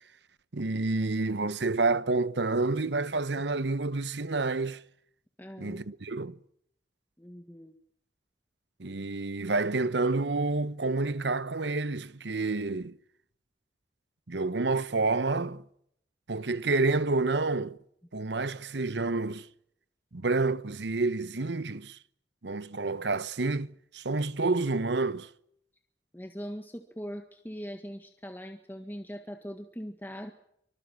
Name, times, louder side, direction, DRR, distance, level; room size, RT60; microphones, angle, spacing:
voice 1, 0.5-4.8 5.6-6.4 8.8-13.0 14.3-15.6 16.3-17.8 18.1-19.5 20.1-22.0 22.4-25.3, right 3 dB, 80° right, 1.0 m, -29 dB
voice 2, 5.4-5.8 7.2-7.7 26.1-30.3, equal, 10° left, 1.7 m, -41 dB
25.5 x 25.0 x 6.1 m
head